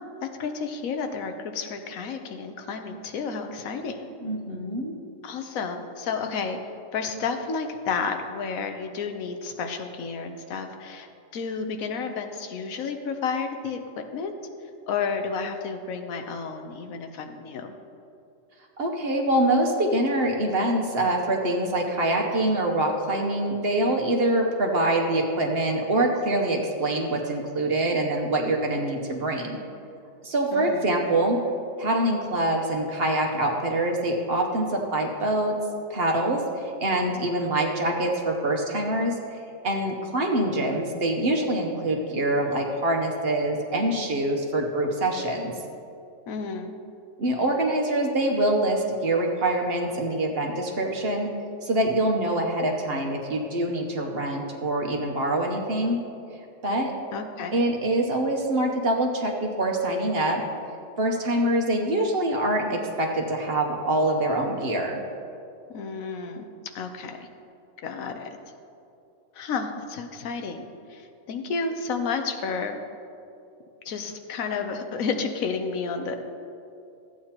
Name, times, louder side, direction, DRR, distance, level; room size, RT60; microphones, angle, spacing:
voice 1, 0.2-4.1 5.2-6.6 6.9-11.1 11.3-14.3 14.9-17.7 30.5-30.9 46.3-46.7 57.1-57.6 65.7-66.5 66.7-67.3 67.8-68.3 69.3-72.8 73.8-76.2, left 5 dB, 85° left, 6 dB, 1.2 m, -31 dB
voice 2, 4.2-4.9 18.8-29.6 30.2-31.4 31.8-35.6 35.9-36.4 36.8-39.4 39.6-45.5 47.2-51.3 51.6-56.0 56.6-56.9 57.5-60.4 61.0-65.0, right 1 dB, 50° right, 1 dB, 1.1 m, -25 dB
14.0 x 8.6 x 2.9 m, 2.6 s
omnidirectional pair, 1.4 m